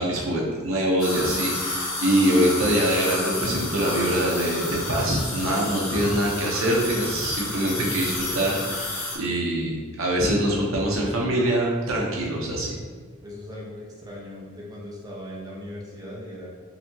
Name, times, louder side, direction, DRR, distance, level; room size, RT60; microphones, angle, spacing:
voice 1, 0.0-12.8, right 1 dB, 75° right, -3 dB, 0.9 m, -24 dB
sound 1, 1.0-9.2, left 2 dB, 65° left, 0.8 m, -31 dB
voice 2, 13.2-16.5, left 1 dB, 20° right, -5 dB, 0.7 m, -38 dB
4.1 x 2.7 x 2.9 m, 1.5 s
head